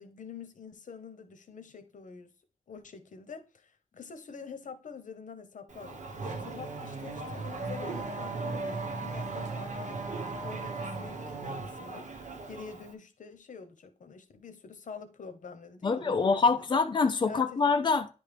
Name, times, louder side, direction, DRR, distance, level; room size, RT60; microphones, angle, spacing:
voice 1, 0.0-2.3 2.7-16.5 17.2-17.6, left 5 dB, 85° left, 0.9 m, -46 dB
Race car auto racing / Accelerating revving vroom, 5.7-12.9, right 3 dB, 75° right, 1.1 m, -37 dB
voice 2, 15.8-18.1, left 4 dB, 35° left, 0.6 m, -25 dB
10.0 x 3.5 x 3.4 m
wide cardioid pair, 145°, 13 cm